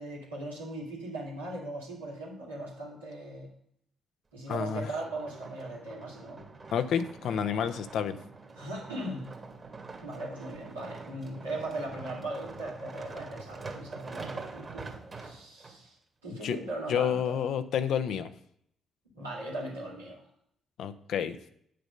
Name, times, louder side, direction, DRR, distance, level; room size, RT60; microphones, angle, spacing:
voice 1, 0.0-3.5 4.3-6.4 8.6-9.2 10.0-14.9 15.2-16.0 16.2-17.4 19.1-20.2, right 1 dB, 90° right, -6 dB, 2.8 m, -39 dB
voice 2, 4.5-4.9 6.7-8.2 16.4-16.6 16.9-18.3 20.8-21.4, left 8 dB, 65° left, 10 dB, 0.7 m, -29 dB
sound 1, 4.8-15.8 16.4-16.5, right 4 dB, 35° right, 2.1 m, -45 dB
8.9 x 6.8 x 5.4 m, 0.69 s
figure-of-eight pair, 40°, 0 cm